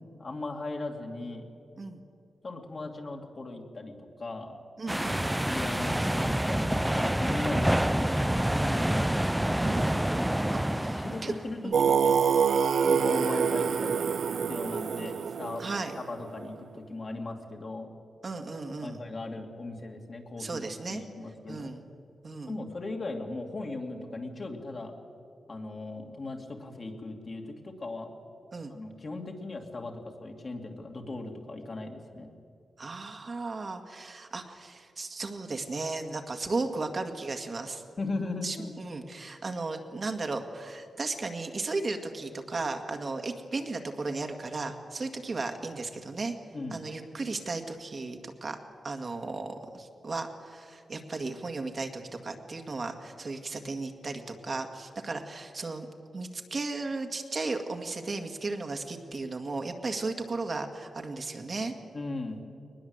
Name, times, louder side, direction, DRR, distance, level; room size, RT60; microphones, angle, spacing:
voice 1, 0.2-1.5 2.4-4.6 5.3-9.2 10.7-12.3 12.9-14.1 14.5-15.7 16.1-17.9 18.8-20.6 20.9-21.7 22.5-24.9 25.5-28.1 28.7-32.3 38.0-38.7 46.5-46.8 61.9-62.4, left 2 dB, 45° left, 2 dB, 2.7 m, -38 dB
voice 2, 4.8-5.4 9.6-11.3 11.6-11.8 12.8-13.1 15.6-15.9 18.2-19.0 20.4-21.0 21.5-21.8 22.2-22.5 28.5-28.7 32.8-37.8 38.4-46.3 46.7-48.6 48.8-55.9 56.1-61.7, right 3 dB, 45° right, 5 dB, 1.9 m, -35 dB
sound 1, 4.9-11.5, right 1 dB, 5° right, 0.5 m, -27 dB
Singing, 11.7-16.5, right 6 dB, 85° right, 0.6 m, -26 dB
21.5 x 20.0 x 8.1 m, 2.5 s
wide cardioid pair, 105°, 0 cm